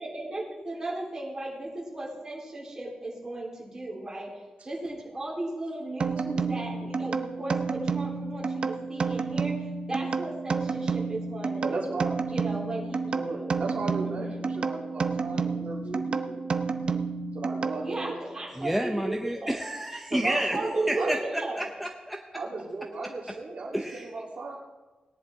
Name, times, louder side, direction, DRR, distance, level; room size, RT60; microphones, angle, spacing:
voice 1, 0.0-11.9 12.3-13.5 14.0-14.4 15.0-15.1 17.8-19.6 20.3-21.7, right 2 dB, 20° right, -5 dB, 3.6 m, -36 dB
sound 1, 6.0-18.2, right 4 dB, 40° right, 0.6 m, -30 dB
voice 2, 11.6-12.2 13.1-16.4 17.3-18.2 20.1-21.1 22.4-24.6, right 3 dB, 60° right, -1 dB, 1.9 m, -35 dB
voice 3, 18.5-20.6 20.9-21.2 21.6-22.4 23.7-24.1, right 1 dB, ahead, 2 dB, 0.7 m, -30 dB
18.0 x 10.5 x 3.6 m, 1.2 s
wide cardioid pair, 170°, 3 cm